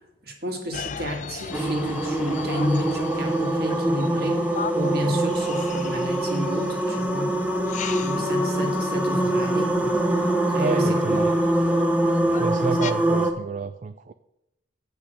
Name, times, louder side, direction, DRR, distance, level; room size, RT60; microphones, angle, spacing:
voice 1, 0.2-4.4 4.7-7.3 8.0-10.0 10.5-11.2, left 1 dB, 55° right, 3 dB, 2.0 m, -30 dB
sound 1, 0.7-12.9, left 6 dB, 40° left, 0.5 m, -39 dB
sound 2, 1.5-13.3, right 1 dB, 10° right, 0.8 m, -24 dB
voice 2, 10.6-11.3 12.3-14.1, right 4 dB, 40° right, 11 dB, 0.3 m, -30 dB
8.4 x 6.1 x 6.4 m, 0.91 s
head